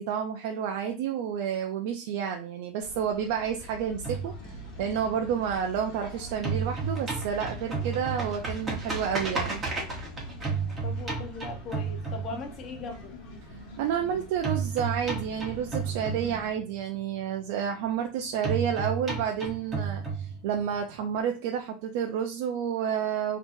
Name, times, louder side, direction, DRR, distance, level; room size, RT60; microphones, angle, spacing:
voice 1, 0.0-9.6 13.8-23.4, right 8 dB, 60° right, 4 dB, 0.4 m, -30 dB
sound 1, 2.8-16.5, left 1 dB, 60° left, 1.2 m, -44 dB
sound 2, 4.0-6.0 6.3-12.8 14.4-16.8 18.4-20.8, right 5 dB, 15° right, 1.0 m, -32 dB
voice 2, 10.8-13.1, left 4 dB, 30° left, 4 dB, 0.7 m, -39 dB
3.6 x 2.8 x 2.6 m, 0.34 s
supercardioid pair, 160°, 0 cm